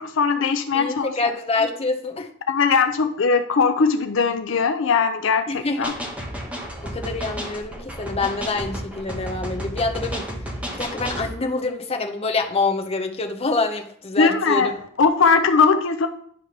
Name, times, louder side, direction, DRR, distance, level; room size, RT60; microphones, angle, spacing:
voice 1, 0.0-1.2 2.5-5.9 14.2-14.7 15.0-16.1, left 5 dB, 65° left, 7 dB, 0.5 m, -20 dB
voice 2, 0.7-2.3 5.5-5.9 6.9-10.3 10.6-14.7, left 3 dB, 30° left, 4 dB, 0.8 m, -26 dB
sound 1, 5.8-11.3, equal, 5° right, 1.1 m, -32 dB
10.0 x 3.3 x 5.8 m, 0.63 s
head